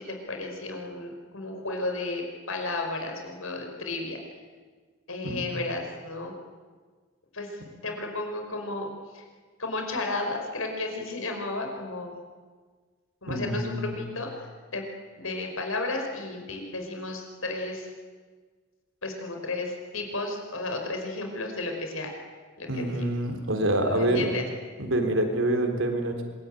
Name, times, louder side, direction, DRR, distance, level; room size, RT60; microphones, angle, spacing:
voice 1, 0.0-4.2 5.1-6.3 7.3-7.5 7.8-9.2 9.6-12.1 13.2-14.9 15.2-17.9 19.0-22.1 22.6-23.1 23.9-24.5, left 2 dB, 80° left, 3 dB, 5.4 m, -33 dB
voice 2, 13.3-14.0 22.7-24.3 24.8-26.2, right 1 dB, 70° right, 5 dB, 3.9 m, -26 dB
26.0 x 22.0 x 9.3 m, 1.5 s
head